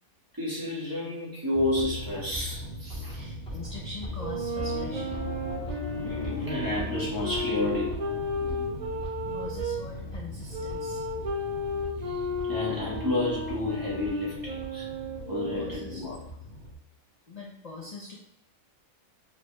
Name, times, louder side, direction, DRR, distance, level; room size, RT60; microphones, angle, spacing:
voice 1, 0.3-3.3 6.0-8.0 12.0-14.9 15.3-16.2, left 2 dB, 15° right, -7 dB, 1.3 m, -31 dB
sound 1, 1.5-16.7, left 1 dB, 5° left, 1.3 m, -39 dB
voice 2, 3.1-5.2 9.2-11.1 15.4-16.1 17.3-18.1, left 3 dB, 55° left, -3 dB, 0.4 m, -43 dB
sound 2, 4.2-9.8 10.5-16.0, left 1 dB, 55° right, 0.4 m, -34 dB
sound 3, 4.5-8.9, left 3 dB, 75° left, 1.1 m, -43 dB
4.4 x 3.0 x 3.2 m, 0.79 s
omnidirectional pair, 1.4 m